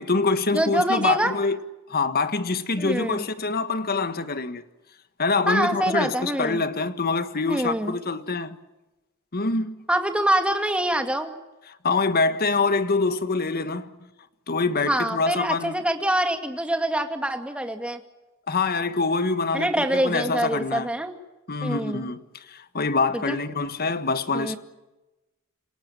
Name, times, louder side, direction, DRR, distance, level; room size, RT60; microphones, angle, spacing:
voice 1, 0.0-1.6 1.9-4.6 5.2-8.6 9.3-9.7 11.8-13.9 14.5-15.7 18.5-20.9 21.5-24.6, left 3 dB, 45° left, 1.5 m, -25 dB
voice 2, 0.5-1.3 2.8-3.3 5.5-6.6 7.5-8.0 9.9-11.3 14.9-18.0 19.5-21.1 21.6-22.1 23.3-23.4 24.3-24.6, right 1 dB, 5° right, 2.3 m, -25 dB
28.0 x 17.0 x 9.2 m
head